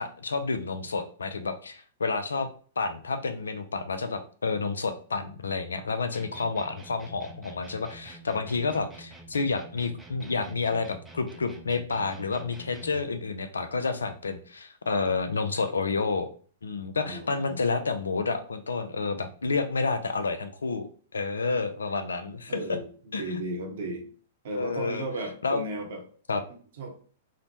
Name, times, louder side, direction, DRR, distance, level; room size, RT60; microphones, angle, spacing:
voice 1, 0.0-2.5 2.8-16.3 16.6-22.6 23.1-23.4 24.5-25.0 25.4-25.6 26.3-26.4, left 4 dB, 80° left, 9 dB, 0.3 m, -30 dB
sound 1, 6.1-13.1, right 2 dB, 10° right, 0.4 m, -48 dB
voice 2, 17.0-17.6 22.5-22.9 23.2-24.0 24.4-26.0 26.8-26.9, right 1 dB, 60° right, 3 dB, 0.8 m, -34 dB
3.0 x 2.1 x 2.7 m, 0.43 s
figure-of-eight pair, 105°, 0 cm